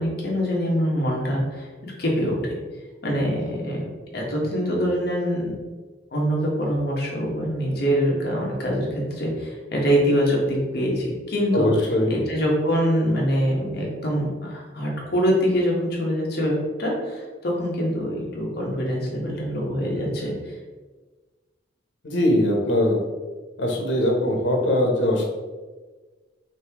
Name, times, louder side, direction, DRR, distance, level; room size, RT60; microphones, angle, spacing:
voice 1, 0.0-2.6 3.0-5.6 6.1-20.6, equal, 60° left, -2 dB, 1.2 m, -24 dB
voice 2, 11.5-12.1 22.0-23.0 23.6-25.2, left 1 dB, 85° left, 1 dB, 1.0 m, -21 dB
5.3 x 2.8 x 3.5 m, 1.3 s
head